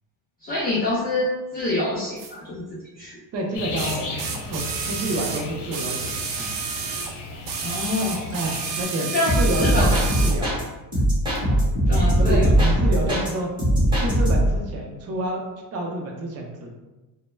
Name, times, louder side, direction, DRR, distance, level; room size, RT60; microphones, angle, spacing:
voice 1, 0.4-2.6 3.0-3.1 7.6-8.2 9.1-9.9 11.9-12.5, left 2 dB, 25° left, -7 dB, 0.3 m, -26 dB
sound 1, 2.2-2.3 3.8-7.1 7.4-10.4 11.3-11.4, right 5 dB, 85° right, 0.6 m, -30 dB
voice 2, 3.3-4.2 4.5-6.6 8.3-9.1 9.3-10.6 11.4-11.6 12.2-13.5 14.0-15.4 15.7-16.8, right 1 dB, 40° right, 0 dB, 0.6 m, -29 dB
sound 2, 3.5-8.8, left 3 dB, 80° left, 0.8 m, -35 dB
sound 3, 9.3-10.6 10.9-13.3 13.6-14.6, right 1 dB, 10° right, 0.9 m, -20 dB
2.2 x 2.0 x 3.1 m, 1.1 s
cardioid pair, 130°, 40 cm